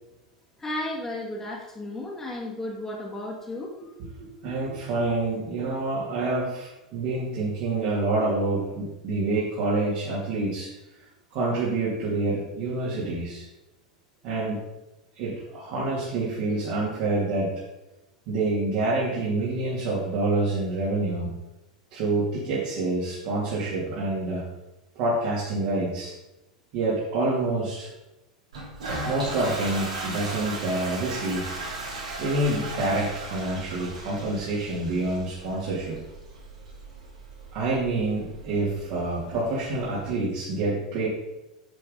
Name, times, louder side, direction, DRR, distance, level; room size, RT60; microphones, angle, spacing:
voice 1, 0.6-3.7, left 1 dB, 15° left, -3 dB, 2.0 m, -33 dB
voice 2, 4.4-10.7 11.3-13.5 14.2-14.6 15.1-17.6 18.3-21.3 21.9-24.5 24.9-26.1 26.7-27.9 29.1-31.5 32.2-36.0 37.5-41.1, right 2 dB, 50° right, -6 dB, 2.8 m, -27 dB
Toilet flush, 28.5-40.1, right 2 dB, 75° right, 3.3 m, -37 dB
10.5 x 6.9 x 4.0 m, 0.96 s
figure-of-eight pair, 85°, 4 cm